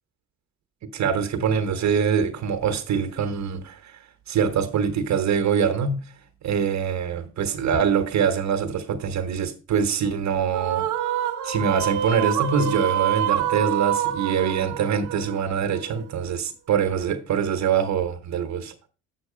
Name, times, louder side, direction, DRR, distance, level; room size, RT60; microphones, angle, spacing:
voice 1, 0.9-4.0 4.3-6.0 6.4-10.9 11.4-18.7, right 7 dB, 65° right, 1.1 m, -24 dB
sound 1, 10.5-16.0, right 10 dB, 85° right, 1.0 m, -26 dB
7.5 x 6.3 x 4.9 m
cardioid pair, 90°, 30 cm